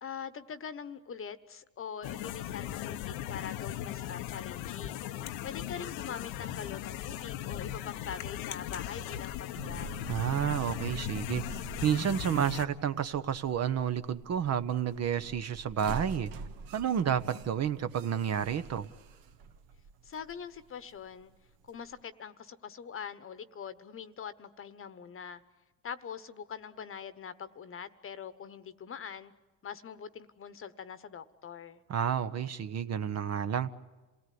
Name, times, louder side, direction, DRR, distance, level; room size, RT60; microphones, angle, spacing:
voice 1, 0.0-5.0 5.4-9.9 20.0-21.3 21.6-25.4 25.8-29.3 29.6-31.8, left 7 dB, 35° left, 1.2 m, -43 dB
sound 1, 2.0-12.7, left 12 dB, 80° left, 1.1 m, -38 dB
sound 2, 9.6-22.0, right 5 dB, 65° right, 1.5 m, -47 dB
voice 2, 10.1-16.3 16.7-18.9 31.9-33.7, right 8 dB, 40° right, 1.1 m, -30 dB
27.0 x 18.0 x 9.5 m
supercardioid pair, 100°, 38 cm